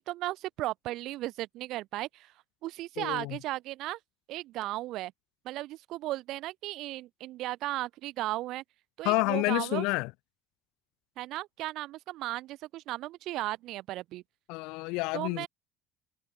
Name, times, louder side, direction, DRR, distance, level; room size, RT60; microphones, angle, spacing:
voice 1, 0.0-2.3 2.6-4.0 4.3-5.1 5.4-8.6 9.0-9.9 11.2-14.2 15.1-15.5, right 16 dB, 55° right, 4.8 m, -35 dB
voice 2, 3.0-3.4 9.0-10.1 14.5-15.5, left 26 dB, 80° left, 2.4 m, -29 dB
cardioid pair, 175°, 0 cm